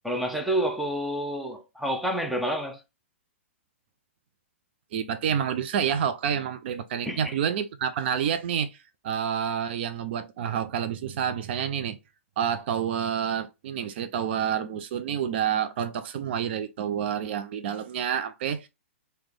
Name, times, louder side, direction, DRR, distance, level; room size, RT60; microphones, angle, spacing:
voice 1, 0.0-2.8 7.0-7.3, right 1 dB, ahead, 0.7 m, -29 dB
voice 2, 4.9-8.8 9.0-12.0 12.4-18.7, right 8 dB, 55° right, 0.5 m, -28 dB
3.2 x 2.9 x 3.6 m
hypercardioid pair, 120°, 7 cm